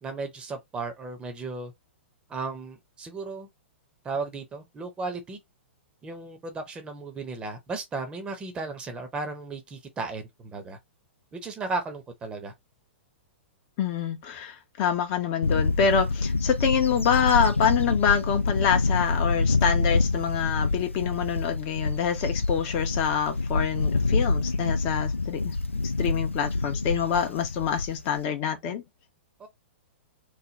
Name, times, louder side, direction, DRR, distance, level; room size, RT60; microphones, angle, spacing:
voice 1, 0.0-1.7 2.3-3.5 4.0-5.4 6.0-10.8 11.3-12.5 29.4-29.5, right 3 dB, 15° right, 0.8 m, -35 dB
voice 2, 13.8-25.6 26.0-28.8, left 7 dB, 35° left, 0.7 m, -26 dB
Bird / Wind, 15.4-28.2, left 3 dB, 85° left, 0.4 m, -26 dB
3.2 x 2.2 x 3.9 m
figure-of-eight pair, 110°, 7 cm